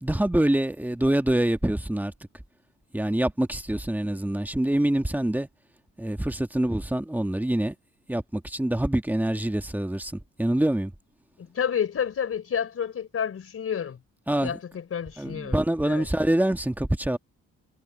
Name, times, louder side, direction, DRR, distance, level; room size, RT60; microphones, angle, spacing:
voice 1, 0.0-2.1 2.9-5.5 6.0-7.7 8.1-10.1 10.4-10.9 14.3-14.6 15.2-17.2, right 1 dB, 5° right, 1.7 m, -25 dB
voice 2, 11.4-14.0 14.4-16.1, left 8 dB, 50° left, 4.2 m, -30 dB
cardioid pair, 90°, 30 cm